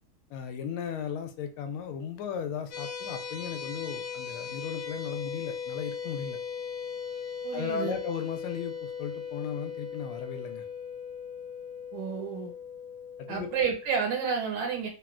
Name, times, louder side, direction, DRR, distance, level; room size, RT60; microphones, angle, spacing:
voice 1, 0.3-6.4 7.5-10.6 13.2-13.5, left 7 dB, 85° left, 7 dB, 1.4 m, -36 dB
sound 1, 2.7-13.9, left 7 dB, 65° left, 1.1 m, -38 dB
voice 2, 7.4-8.0 11.9-12.5 13.3-14.9, right 6 dB, 80° right, 1 dB, 1.8 m, -30 dB
3.7 x 2.2 x 2.4 m, 0.35 s
omnidirectional pair, 2.3 m